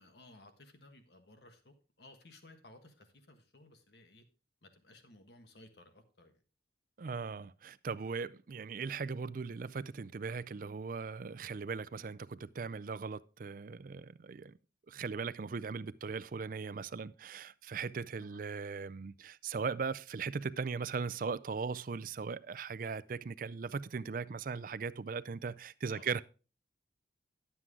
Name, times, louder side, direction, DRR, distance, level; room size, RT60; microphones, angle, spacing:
voice 1, 0.0-4.2 4.6-6.4 18.2-18.4 25.5-25.6 25.9-26.1, left 2 dB, 60° left, 1.5 m, -58 dB
voice 2, 7.0-14.5 14.9-26.2, right 5 dB, 50° right, 0.4 m, -39 dB
11.0 x 7.6 x 3.7 m
head